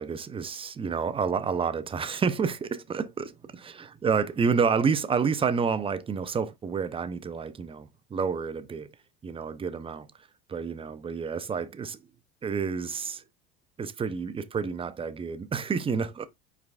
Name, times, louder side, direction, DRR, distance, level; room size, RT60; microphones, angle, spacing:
voice 1, 0.0-3.3 3.6-8.9 9.2-10.1 10.5-12.0 12.4-13.2 13.8-16.3, right 6 dB, 20° right, 0.5 m, -29 dB
4.9 x 4.6 x 2.3 m
supercardioid pair, 90°, 30 cm